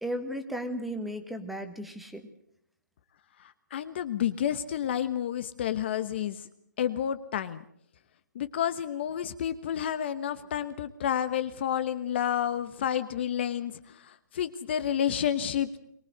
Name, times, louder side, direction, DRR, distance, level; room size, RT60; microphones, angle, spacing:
voice 1, 0.0-2.3, equal, ahead, 6 dB, 1.5 m, -35 dB
voice 2, 3.7-6.5 6.8-7.6 8.3-15.8, left 9 dB, 35° left, 12 dB, 1.1 m, -30 dB
23.0 x 19.0 x 7.9 m, 0.71 s
hypercardioid pair, 155°, 10 cm